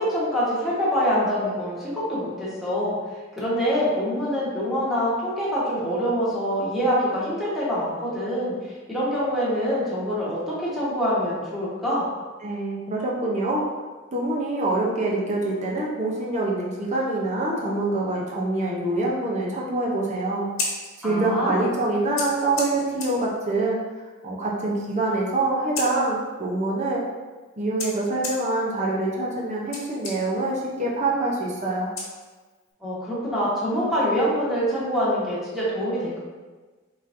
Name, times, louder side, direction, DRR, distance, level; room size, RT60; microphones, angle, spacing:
voice 1, 0.0-2.9 3.3-12.0 21.0-21.6 32.8-36.2, equal, ahead, -9 dB, 1.3 m, -25 dB
voice 2, 12.4-13.6 14.1-20.5 21.0-23.8 24.2-27.0 27.6-31.9, right 2 dB, 35° right, -3 dB, 0.6 m, -25 dB
Scissors, 20.3-32.7, left 3 dB, 90° left, 1.0 m, -38 dB
3.9 x 3.9 x 2.6 m, 1.3 s
head